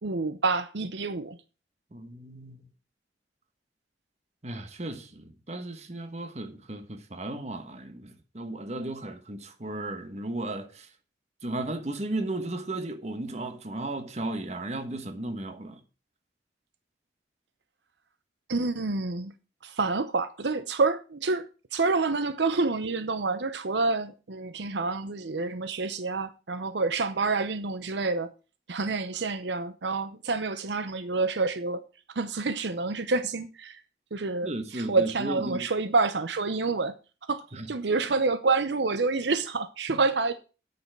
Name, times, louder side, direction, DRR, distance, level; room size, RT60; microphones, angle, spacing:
voice 1, 0.0-1.4 18.5-19.3 19.6-28.3 28.7-31.8 32.1-33.8 34.1-36.9 37.3-40.3, right 3 dB, 75° right, 0.8 m, -28 dB
voice 2, 1.9-2.7 4.4-10.9 11.4-15.8 34.4-35.6 37.5-37.7 39.9-40.0, right 2 dB, 35° right, 1.2 m, -35 dB
8.5 x 6.8 x 6.0 m
head